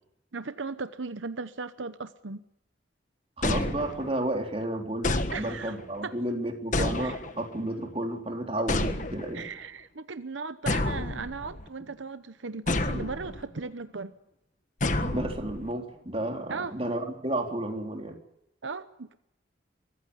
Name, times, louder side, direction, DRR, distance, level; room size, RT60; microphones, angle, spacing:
voice 1, 0.3-2.4 5.3-5.8 6.0-6.1 6.8-7.2 9.3-14.1 16.5-16.7 18.6-19.2, right 4 dB, 80° right, 12 dB, 0.9 m, -37 dB
sound 1, 3.4-4.3 5.0-5.9 6.7-7.6 8.7-9.5 10.7-11.7 12.7-13.4 14.8-15.7, left 2 dB, 40° left, 1.5 m, -30 dB
voice 2, 3.4-9.4 15.0-18.2, right 1 dB, 30° right, 3 dB, 3.7 m, -32 dB
23.5 x 15.0 x 9.7 m, 0.84 s
head